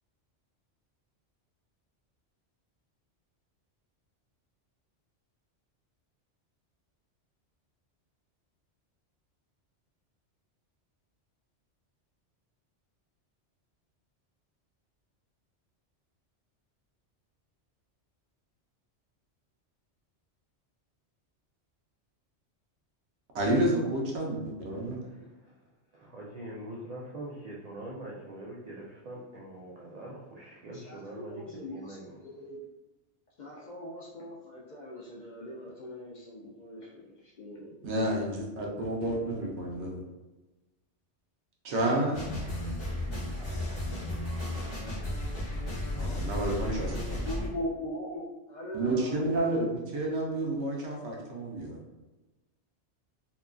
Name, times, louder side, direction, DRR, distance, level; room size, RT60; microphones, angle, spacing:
voice 1, 23.3-25.0 37.8-40.0 41.6-42.2 45.9-47.2 48.7-51.8, right 1 dB, 80° right, -1 dB, 1.0 m, -30 dB
voice 2, 25.0-25.5 25.9-32.2, right 1 dB, 60° right, -4 dB, 0.4 m, -43 dB
voice 3, 30.7-32.0 32.4-32.6 33.4-37.8 47.3-49.4, left 1 dB, 55° left, -4 dB, 0.5 m, -40 dB
sound 1, 42.1-47.5, left 1 dB, 30° left, 1.0 m, -34 dB
2.9 x 2.2 x 2.4 m, 1.1 s
omnidirectional pair, 1.2 m